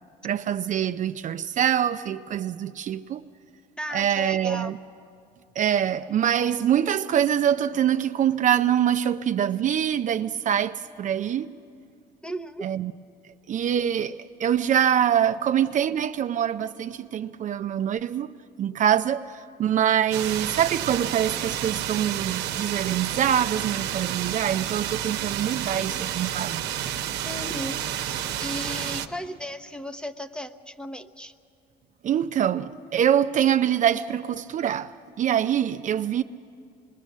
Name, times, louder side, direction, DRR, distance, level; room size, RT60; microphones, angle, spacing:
voice 1, 0.2-3.2 3.9-4.7 5.6-11.5 12.6-12.9 13.5-18.3 18.6-26.6 32.0-36.2, right 9 dB, 50° right, 0.5 m, -24 dB
voice 2, 3.8-4.7 12.2-12.7 27.2-31.3, equal, 5° left, 0.8 m, -36 dB
sound 1, 20.1-29.1, right 11 dB, 80° right, 0.9 m, -30 dB
25.5 x 21.0 x 7.3 m
cardioid pair, 110°, 17 cm